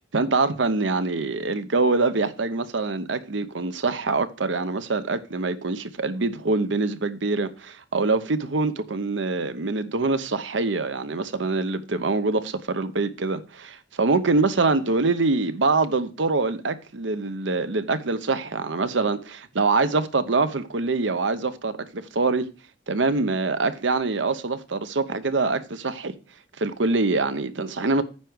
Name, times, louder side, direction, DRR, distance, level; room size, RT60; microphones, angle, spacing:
voice 1, 0.1-22.5 22.9-26.1 26.6-28.0, right 3 dB, 80° right, 0.9 m, -24 dB
9.7 x 4.7 x 6.3 m
head